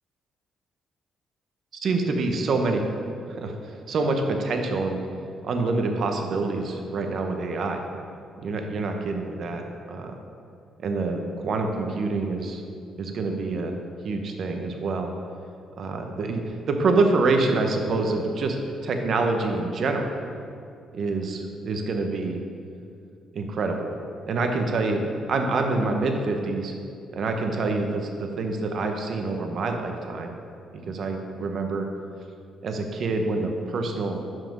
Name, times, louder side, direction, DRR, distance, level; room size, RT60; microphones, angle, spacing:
voice 1, 1.8-2.8 3.3-5.0 5.4-7.8 8.4-9.6 9.9-10.1 10.8-12.6 13.0-13.8 14.0-15.1 15.8-18.6 18.8-20.1 20.9-22.4 23.3-23.9 24.2-25.0 25.3-26.7 27.2-30.3 30.7-31.9 32.6-34.2, right 3 dB, 60° right, 4 dB, 0.8 m, -26 dB
5.8 x 5.0 x 6.0 m, 2.4 s
cardioid pair, 90°, 0 cm